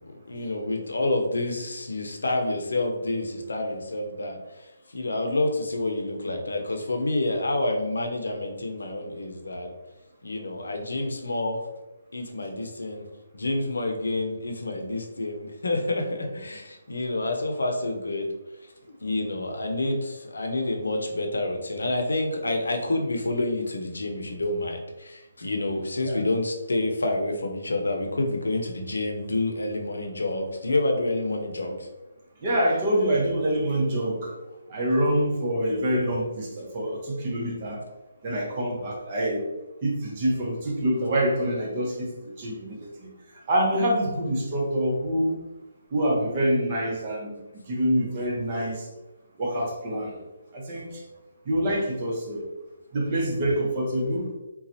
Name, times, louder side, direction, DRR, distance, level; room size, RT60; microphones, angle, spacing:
voice 1, 0.1-9.7 10.2-11.6 12.1-13.1 13.3-18.3 18.9-31.9, left 2 dB, 80° left, 3 dB, 0.6 m, -28 dB
voice 2, 32.4-34.3 34.7-37.8 38.2-39.4 39.8-42.1 42.4-43.1 43.5-45.4 45.9-47.4 47.7-48.9 49.4-50.2 50.5-50.9 51.4-52.5 52.9-54.3, equal, 40° right, -2 dB, 0.9 m, -26 dB
4.0 x 2.3 x 2.7 m, 1.1 s
hypercardioid pair, 150°, 0 cm